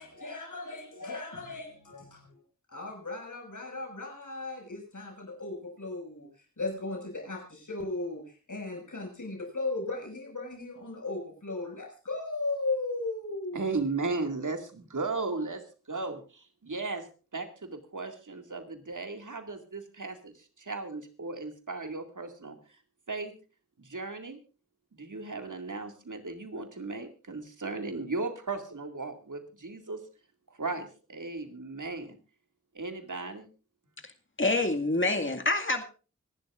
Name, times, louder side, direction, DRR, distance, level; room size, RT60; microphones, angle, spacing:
voice 1, 0.0-2.3 2.7-6.3 6.6-8.2 8.5-13.7, left 2 dB, 85° left, 2 dB, 6.2 m, -36 dB
voice 2, 13.5-17.1 17.3-22.6 23.1-23.3 23.8-24.4 24.9-30.0 30.6-32.2 32.7-33.5, right 3 dB, 90° right, 6 dB, 2.3 m, -36 dB
voice 3, 34.4-35.8, left 2 dB, 40° left, 5 dB, 2.1 m, -26 dB
25.5 x 11.5 x 2.5 m, 0.35 s
wide cardioid pair, 45°, 30 cm